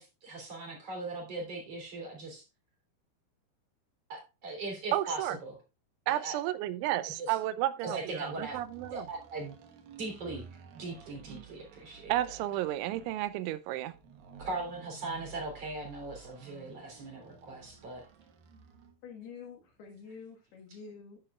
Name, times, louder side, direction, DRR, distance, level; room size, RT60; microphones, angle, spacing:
voice 1, 0.0-2.5 4.1-5.6 6.1-6.4 7.1-7.4 7.8-8.6 8.9-9.6 10.0-10.4 10.7-12.4 14.4-18.1, right 2 dB, 35° right, 3.7 m, -39 dB
voice 2, 4.9-5.4 6.1-9.0 12.1-13.9, right 14 dB, 90° right, 3.1 m, -32 dB
sound 1, 8.2-19.0, right 7 dB, 65° right, 2.5 m, -53 dB
voice 3, 19.0-21.2, left 5 dB, 65° left, 3.2 m, -47 dB
10.5 x 9.9 x 2.4 m
omnidirectional pair, 5.4 m